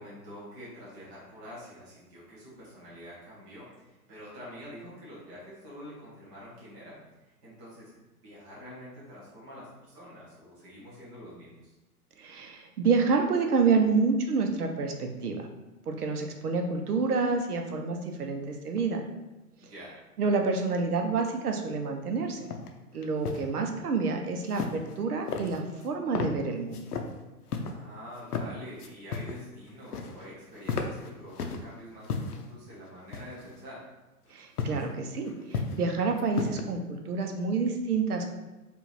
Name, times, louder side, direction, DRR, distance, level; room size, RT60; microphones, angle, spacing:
voice 1, 0.0-6.9 7.2-7.9 8.2-11.7 19.6-20.0 27.7-33.9, equal, 10° right, -7 dB, 0.4 m, -46 dB
voice 2, 12.2-15.5 15.9-19.1 20.2-22.5 22.9-26.8 34.3-38.3, right 4 dB, 70° right, 4 dB, 0.7 m, -28 dB
Realistic Footsteps, 22.5-22.7 23.0-23.4 24.5-25.0 25.3-25.9 26.1-26.3 26.7-27.1 27.5-27.7 28.2-28.5 28.8-29.4 29.7-30.3 30.6-31.6 32.0-32.4 33.1-33.6 34.6-34.8 35.3-35.9 36.2-36.7, left 5 dB, 70° left, 0.6 m, -33 dB
4.6 x 2.5 x 3.1 m, 1.1 s
figure-of-eight pair, 115°, 47 cm